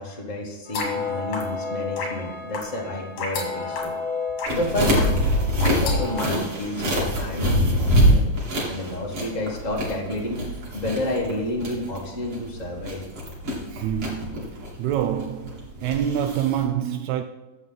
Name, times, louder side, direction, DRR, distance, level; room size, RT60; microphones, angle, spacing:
voice 1, 0.0-3.9 4.5-4.9 5.6-8.2 8.7-10.4 10.7-13.0, left 1 dB, 35° left, 0.6 m, -30 dB
sound 1, 0.7-6.3, left 4 dB, 90° left, 3.7 m, -31 dB
sound 2, 4.5-16.6, equal, 45° right, 3.3 m, -25 dB
voice 2, 13.7-17.2, right 10 dB, 80° right, 1.7 m, -27 dB
12.5 x 7.5 x 3.9 m
omnidirectional pair, 3.5 m